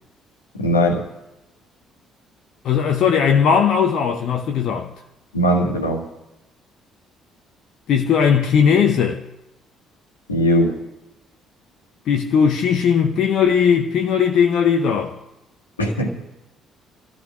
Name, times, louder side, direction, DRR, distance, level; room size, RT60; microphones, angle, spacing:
voice 1, 0.6-1.0 5.3-6.0 10.3-10.8 15.8-16.1, equal, 85° left, 1.6 m, -19 dB
voice 2, 2.6-4.9 7.9-9.2 12.1-15.2, left 7 dB, 55° left, 0.9 m, -18 dB
29.0 x 15.0 x 2.5 m
figure-of-eight pair, 45°, 0 cm